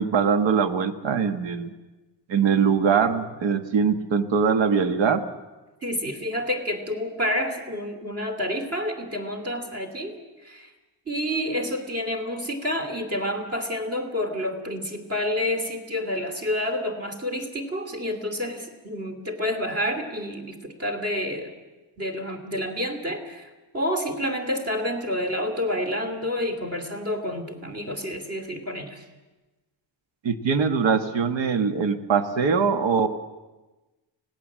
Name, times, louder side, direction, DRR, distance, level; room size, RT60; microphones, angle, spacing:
voice 1, 0.0-1.7 2.3-5.2 30.2-33.1, right 6 dB, 70° right, 8 dB, 1.4 m, -22 dB
voice 2, 5.8-10.7 11.1-21.5 22.0-29.0, left 1 dB, 30° right, 4 dB, 2.8 m, -29 dB
25.5 x 18.0 x 7.4 m, 1.1 s
wide cardioid pair, 170°, 47 cm